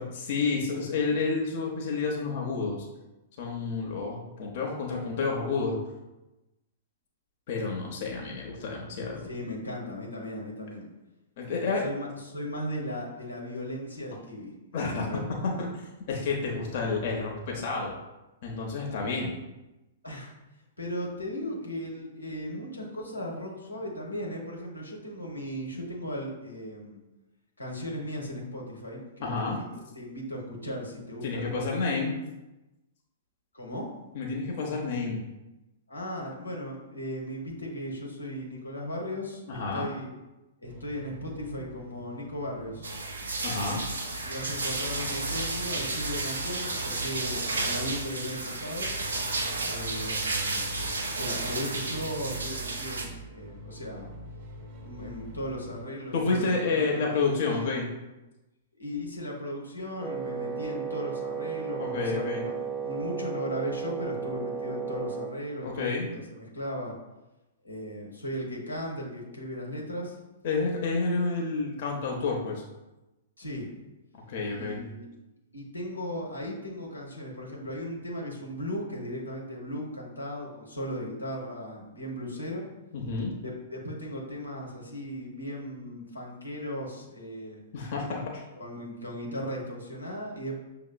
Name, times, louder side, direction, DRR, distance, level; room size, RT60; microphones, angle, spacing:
voice 1, 0.3-2.9 3.4-5.8 7.5-9.3 11.4-11.8 14.7-17.9 18.4-19.4 29.2-29.6 31.2-32.1 34.1-35.2 39.5-39.9 43.4-43.8 56.1-57.9 61.8-62.4 65.6-66.1 70.4-72.6 74.3-74.8 82.9-83.3 87.7-88.4, left 4 dB, 50° left, -1 dB, 0.7 m, -30 dB
voice 2, 9.2-10.9 11.5-14.5 14.9-15.4 20.0-20.3 20.8-27.0 27.6-29.6 29.9-32.1 33.5-33.9 35.9-40.1 40.6-42.9 44.2-48.9 49.6-50.8 51.2-54.1 54.8-57.8 58.8-62.5 62.8-66.9 67.6-70.2 73.4-73.8 74.5-75.1 75.5-82.7 83.4-87.6 88.6-90.6, equal, 90° left, -2 dB, 1.1 m, -37 dB
sound 1, 40.6-55.9, right 1 dB, 35° right, 0.8 m, -46 dB
sound 2, 42.8-53.1, right 2 dB, 80° right, 0.8 m, -32 dB
Wind instrument woodwind instrument, 60.0-65.4, right 6 dB, 10° right, 0.4 m, -34 dB
6.3 x 2.8 x 2.2 m, 0.99 s
figure-of-eight pair, 110°, 0 cm